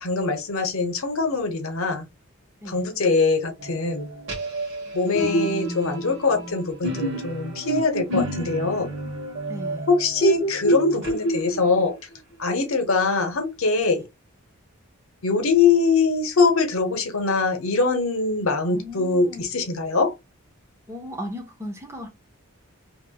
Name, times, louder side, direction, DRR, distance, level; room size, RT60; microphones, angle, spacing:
voice 1, 0.0-2.0 2.7-4.1 4.9-8.9 9.9-11.9 12.4-14.0 15.2-20.1, left 4 dB, 75° left, 0.8 m, -23 dB
sound 1, 3.6-12.0, right 2 dB, 60° right, 1.2 m, -28 dB
voice 2, 9.5-9.9 13.9-14.1 18.7-19.5 20.9-22.1, equal, 15° right, 0.7 m, -36 dB
3.0 x 2.9 x 2.2 m
head